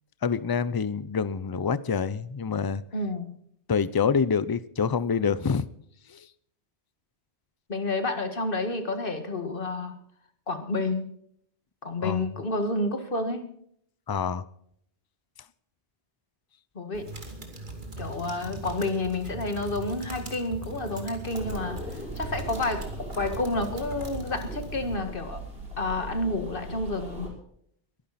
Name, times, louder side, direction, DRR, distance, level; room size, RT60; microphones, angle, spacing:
voice 1, 0.2-2.8 3.7-5.6 6.1-6.3 12.0-12.2 14.1-14.4, left 6 dB, 30° left, 0.4 m, -26 dB
voice 2, 2.9-3.4 7.7-10.0 10.5-11.1 11.8-13.4 16.8-17.1 18.0-25.4 25.8-27.4, left 2 dB, 50° left, 2.0 m, -30 dB
sound 1, 16.9-24.9, right 2 dB, 45° right, 2.7 m, -40 dB
sound 2, 21.3-27.3, right 2 dB, 60° right, 6.0 m, -39 dB
22.0 x 11.5 x 4.2 m
omnidirectional pair, 1.1 m